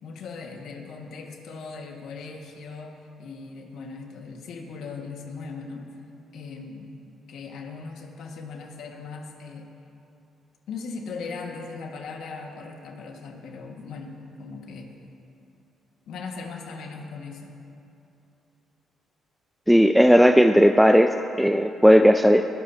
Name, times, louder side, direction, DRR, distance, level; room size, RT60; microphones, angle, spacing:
voice 1, 0.0-5.9 6.3-6.9 7.3-9.7 10.7-14.9 16.1-17.6, left 4 dB, 80° left, 1 dB, 1.8 m, -38 dB
voice 2, 19.7-22.5, equal, ahead, 6 dB, 0.4 m, -16 dB
21.5 x 13.5 x 2.9 m, 2.8 s
cardioid pair, 90°, 0 cm